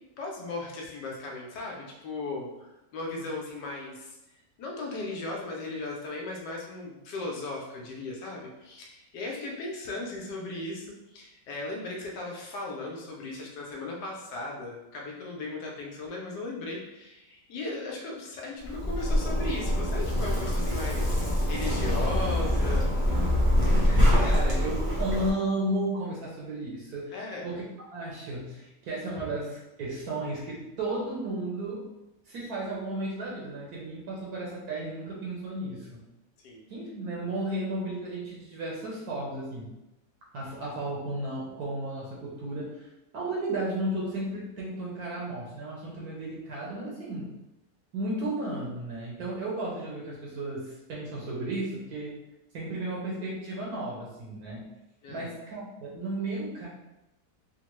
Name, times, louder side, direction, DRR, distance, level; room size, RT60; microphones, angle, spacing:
voice 1, 0.2-22.9 27.1-27.5 29.2-29.3 36.4-36.6 55.0-55.3, left 2 dB, 80° left, -1 dB, 1.2 m, -37 dB
Zipper (clothing), 18.6-25.3, left 1 dB, 45° right, 0.6 m, -25 dB
voice 2, 23.8-27.6 27.9-31.9 32.3-36.0 36.7-39.7 40.3-42.9 43.1-47.3 47.9-52.2 52.5-54.7 55.1-56.7, right 1 dB, 70° right, -4 dB, 1.1 m, -34 dB
3.6 x 2.1 x 3.0 m, 0.97 s
omnidirectional pair, 1.9 m